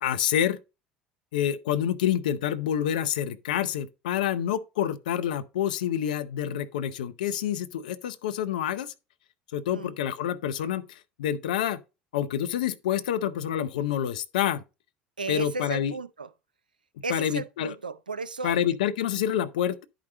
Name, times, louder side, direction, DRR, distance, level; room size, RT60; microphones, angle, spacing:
voice 1, 0.0-0.6 1.3-8.9 9.5-11.8 12.1-14.6 15.3-16.0 17.1-17.7 18.4-19.8, left 10 dB, 70° left, 0.7 m, -27 dB
voice 2, 15.2-16.3 17.0-18.5, right 4 dB, 90° right, 0.4 m, -34 dB
10.5 x 5.1 x 3.7 m
figure-of-eight pair, 65°, 5 cm